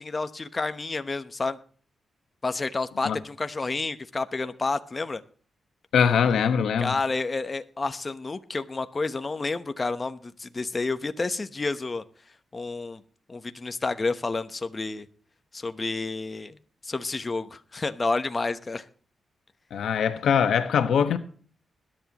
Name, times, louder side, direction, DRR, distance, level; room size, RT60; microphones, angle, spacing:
voice 1, 0.0-1.6 2.4-5.2 6.8-12.0 12.5-13.0 13.3-15.1 15.5-16.5 16.8-18.8, left 3 dB, 30° left, 1.0 m, -30 dB
voice 2, 5.9-6.9 19.7-21.2, left 7 dB, 90° left, 1.4 m, -22 dB
21.0 x 10.5 x 3.0 m
cardioid pair, 90°, 0 cm